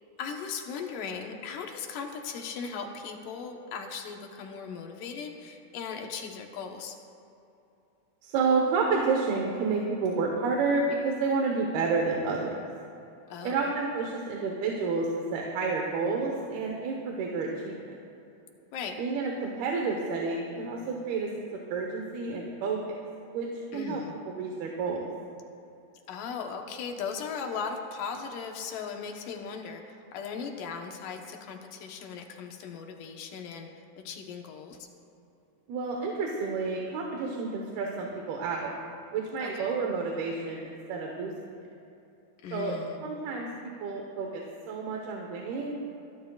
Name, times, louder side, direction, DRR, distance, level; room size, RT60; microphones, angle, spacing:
voice 1, 0.2-7.0 13.3-13.6 18.7-18.9 23.7-24.1 26.1-33.7 34.0-34.9 39.4-39.8 42.4-43.0, left 6 dB, 70° left, 2 dB, 2.6 m, -38 dB
voice 2, 8.2-12.7 13.4-18.0 19.0-23.0 23.3-23.5 23.7-24.0 24.3-25.1 35.7-38.7 39.1-41.3 42.5-45.8, right 4 dB, 85° right, 0 dB, 3.1 m, -30 dB
28.0 x 12.0 x 2.4 m, 2.9 s
omnidirectional pair, 4.3 m